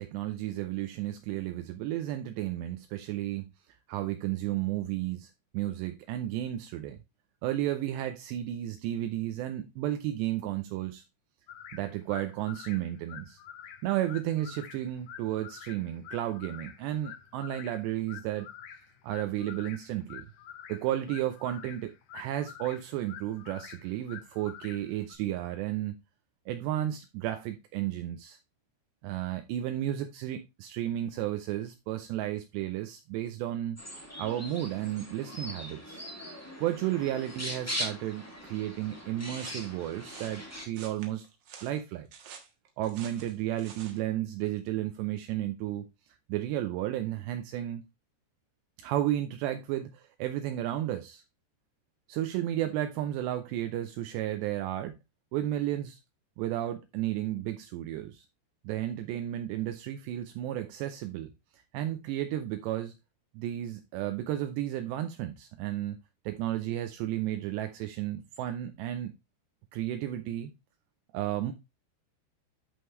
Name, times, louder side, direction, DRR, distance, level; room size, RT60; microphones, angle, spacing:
voice 1, 0.0-3.5 3.9-7.0 7.4-11.0 11.7-13.4 13.8-18.5 19.0-20.3 20.7-26.0 26.5-28.4 29.0-33.8 34.2-36.1 36.6-41.3 41.6-42.1 42.8-45.9 46.3-47.8 48.8-51.2 52.1-55.0 55.3-56.0 56.4-58.3 58.6-62.9 63.3-66.0 66.2-69.1 69.7-70.5 71.1-71.5, right 13 dB, 80° right, 2.8 m, -33 dB
sound 1, 11.5-25.2, left 9 dB, 65° left, 2.2 m, -48 dB
sound 2, 33.8-40.7, equal, 5° left, 1.1 m, -40 dB
sound 3, 39.3-44.0, right 7 dB, 60° right, 2.8 m, -49 dB
11.0 x 5.3 x 3.1 m
omnidirectional pair, 5.2 m